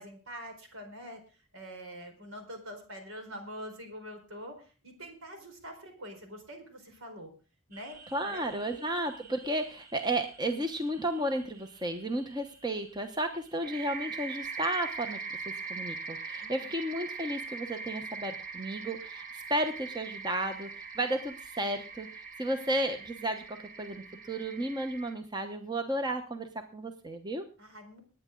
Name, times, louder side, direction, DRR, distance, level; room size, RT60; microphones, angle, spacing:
voice 1, 0.0-7.3 7.7-8.0 8.2-8.8 16.4-16.8 27.6-28.0, equal, 75° right, 4 dB, 4.4 m, -45 dB
sound 1, 7.7-25.1, right 4 dB, 40° right, 1.5 m, -43 dB
voice 2, 8.1-15.2 15.7-27.4, right 1 dB, 20° right, 6 dB, 1.0 m, -33 dB
20.0 x 9.3 x 3.8 m, 0.35 s
head